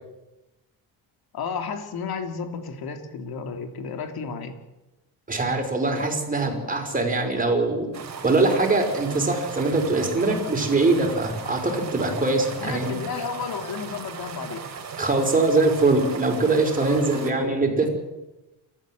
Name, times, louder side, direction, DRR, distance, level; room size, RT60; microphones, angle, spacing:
voice 1, 1.3-4.6 12.5-14.6 16.8-17.6, left 5 dB, 55° left, 6 dB, 3.1 m, -32 dB
voice 2, 5.3-7.9 8.2-12.9 15.0-17.9, right 3 dB, 20° right, 3 dB, 5.4 m, -22 dB
sound 1, 7.9-17.3, right 6 dB, 40° right, 3.5 m, -37 dB
29.5 x 14.0 x 7.8 m, 1.0 s
cardioid pair, 125°, 43 cm